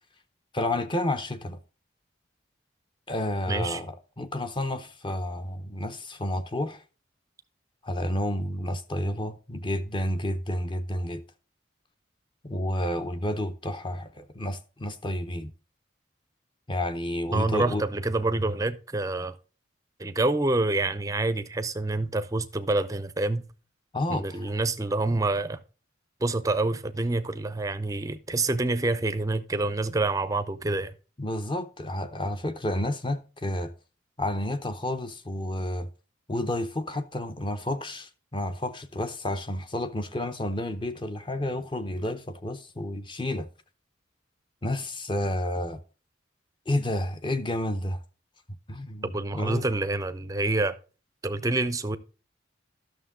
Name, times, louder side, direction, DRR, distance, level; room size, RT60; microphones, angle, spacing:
voice 1, 0.5-1.6 3.1-6.8 7.8-11.2 12.4-15.5 16.7-17.8 23.9-24.5 31.2-33.7 34.2-35.9 36.3-43.5 44.6-45.8 46.7-48.0 48.7-49.7, left 1 dB, 25° left, 0.6 m, -30 dB
voice 2, 3.5-3.8 17.3-19.4 20.0-23.4 24.1-25.6 26.2-30.9 49.0-50.8 51.2-52.0, right 2 dB, 15° right, 0.5 m, -27 dB
11.5 x 6.5 x 3.6 m
head